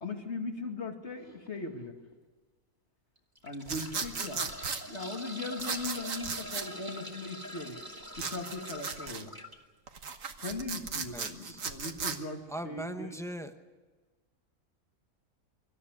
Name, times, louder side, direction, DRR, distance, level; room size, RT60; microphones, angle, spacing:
voice 1, 0.0-2.0 3.4-4.4 4.9-7.8 8.2-9.3 10.4-13.1, left 3 dB, 50° left, 3 dB, 2.5 m, -39 dB
sound 1, 1.2-1.5 2.1-2.2 3.2-9.6 11.1-11.3 11.5-11.6, equal, 15° right, 2.4 m, -44 dB
sound 2, 3.7-4.8 5.6-6.7 8.2-9.2 9.9-12.2, right 5 dB, 65° right, 1.7 m, -36 dB
voice 2, 11.1-11.6 12.5-13.5, right 1 dB, ahead, 7 dB, 0.9 m, -39 dB
25.0 x 13.5 x 9.6 m, 1.3 s
omnidirectional pair, 1.5 m